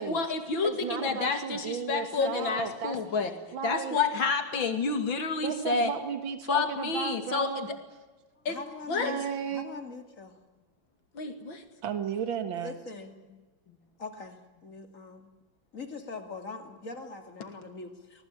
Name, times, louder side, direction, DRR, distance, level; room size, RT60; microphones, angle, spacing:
voice 1, 0.0-3.3 3.6-5.9 6.5-7.7 8.4-8.6 8.9-9.2 11.1-11.6, left 4 dB, 85° left, 7 dB, 3.1 m, -29 dB
voice 2, 0.6-3.0 3.5-4.0 5.4-7.8 9.0-9.7 11.8-12.7, right 7 dB, 80° right, 9 dB, 2.4 m, -34 dB
voice 3, 2.2-2.5 3.4-3.5 8.4-9.2 9.5-10.3 12.5-13.1 14.0-15.3 15.7-18.3, left 3 dB, 40° left, 6 dB, 2.9 m, -42 dB
24.5 x 19.5 x 9.1 m, 1.2 s
omnidirectional pair, 2.1 m